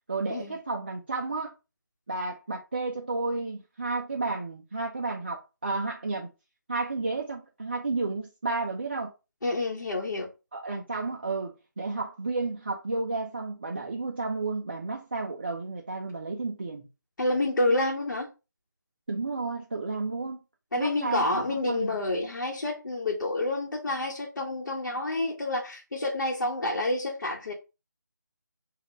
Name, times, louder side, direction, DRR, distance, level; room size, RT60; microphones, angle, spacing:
voice 1, 0.1-1.5 2.1-6.3 6.7-9.1 10.5-16.9 19.1-20.4 20.8-22.0, right 3 dB, 35° right, 0.4 m, -32 dB
voice 2, 9.4-10.3 17.2-18.3 20.7-27.5, left 2 dB, 75° left, 1.1 m, -28 dB
4.1 x 2.4 x 3.7 m
figure-of-eight pair, 175°, 10 cm